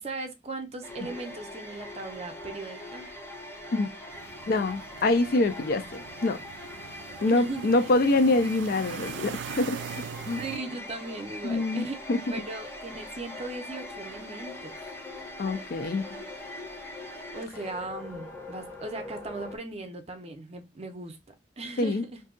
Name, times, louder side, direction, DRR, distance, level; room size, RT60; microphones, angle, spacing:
voice 1, 0.0-3.1 7.3-7.7 10.2-12.0 12.2-14.9 17.3-21.2 21.6-22.2, right 2 dB, 35° right, 0.6 m, -38 dB
sound 1, 0.8-19.6, left 1 dB, 15° left, 0.7 m, -42 dB
sound 2, 4.1-10.6, right 7 dB, 90° right, 0.3 m, -42 dB
voice 2, 4.5-6.4 7.2-9.8 10.3-10.4 11.4-12.4 15.4-16.0 21.8-22.0, left 2 dB, 55° left, 0.4 m, -25 dB
2.6 x 2.3 x 3.6 m
head